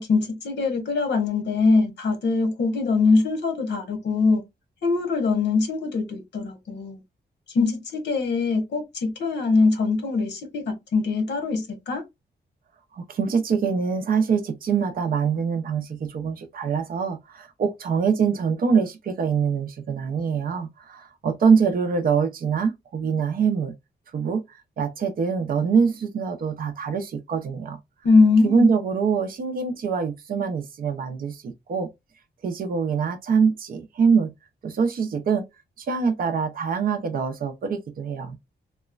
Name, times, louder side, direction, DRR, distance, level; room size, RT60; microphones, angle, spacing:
voice 1, 0.0-4.4 4.8-7.0 7.5-12.0 28.0-28.7, left 4 dB, 85° left, 1.0 m, -22 dB
voice 2, 12.9-23.7 24.1-24.4 24.8-27.8 28.4-31.9 32.4-34.3 34.6-35.4 35.8-38.4, right 6 dB, 55° right, 0.5 m, -24 dB
3.0 x 2.1 x 2.3 m
wide cardioid pair, 175°, 18 cm